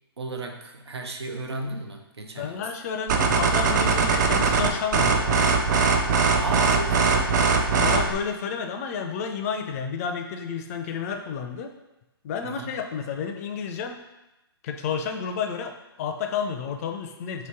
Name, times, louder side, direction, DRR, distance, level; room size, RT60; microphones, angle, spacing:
voice 1, 0.2-2.7 6.4-7.3 12.4-12.8, right 2 dB, 90° right, 4 dB, 0.6 m, -34 dB
voice 2, 2.4-5.5 7.8-11.7 12.2-14.0 14.6-17.5, left 6 dB, 35° left, 5 dB, 0.4 m, -31 dB
sound 1, 3.1-8.1, right 4 dB, 45° right, 0.5 m, -21 dB
3.0 x 2.9 x 4.5 m, 0.96 s
hypercardioid pair, 135°, 13 cm